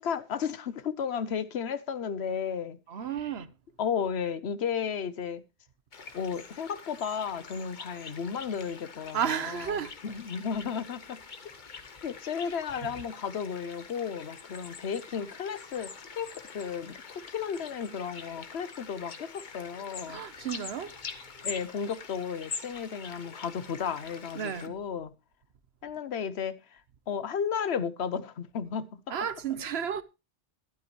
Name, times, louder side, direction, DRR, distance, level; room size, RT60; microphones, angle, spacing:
voice 1, 0.0-2.8 3.8-5.4 6.1-9.2 9.4-9.7 10.0-11.2 12.0-20.2 21.4-25.1 25.8-26.8 27.1-29.0, left 7 dB, 90° left, 1.1 m, -33 dB
voice 2, 2.9-3.5 9.1-10.2 12.8-13.0 20.1-21.0 24.3-24.8 29.1-30.0, right 8 dB, 80° right, 1.1 m, -33 dB
sound 1, 5.9-24.7, left 5 dB, 50° left, 1.1 m, -45 dB
13.0 x 12.0 x 3.0 m
omnidirectional pair, 1.1 m